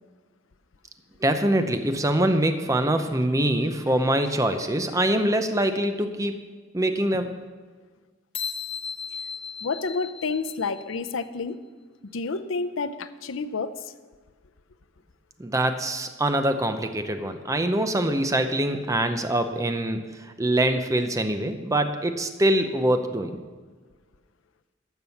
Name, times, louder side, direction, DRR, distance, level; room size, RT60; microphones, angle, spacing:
voice 1, 1.2-6.4 6.7-7.3 15.4-23.4, right 1 dB, 15° right, 8 dB, 0.6 m, -24 dB
sound 1, 8.3-11.0, left 6 dB, 30° left, 0.8 m, -35 dB
voice 2, 9.6-11.6 12.1-13.7, left 4 dB, 85° left, 11 dB, 0.6 m, -29 dB
12.5 x 6.2 x 7.1 m, 1.4 s
head